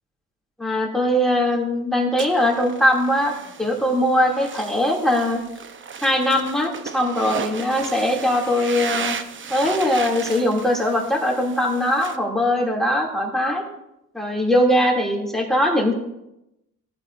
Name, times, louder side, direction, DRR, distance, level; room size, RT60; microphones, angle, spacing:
voice 1, 0.6-5.4 6.0-9.1 9.5-13.7 14.1-15.9, left 1 dB, ahead, -2 dB, 2.3 m, -21 dB
sound 1, 2.2-12.2, right 6 dB, 40° right, 0.7 m, -34 dB
14.5 x 7.6 x 2.5 m, 0.86 s
cardioid pair, 90°, 30 cm